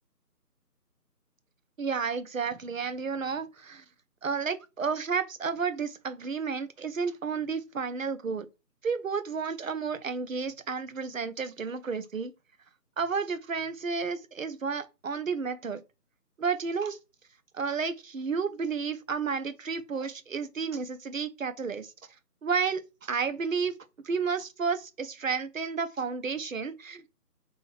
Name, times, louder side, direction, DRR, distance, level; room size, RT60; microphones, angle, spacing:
voice 1, 1.8-3.8 4.2-8.5 8.8-12.3 13.0-15.8 16.4-17.0 17.5-21.9 22.4-23.8 24.0-27.1, right 5 dB, 55° right, 0.5 m, -31 dB
3.5 x 2.6 x 4.5 m
figure-of-eight pair, 175°, 48 cm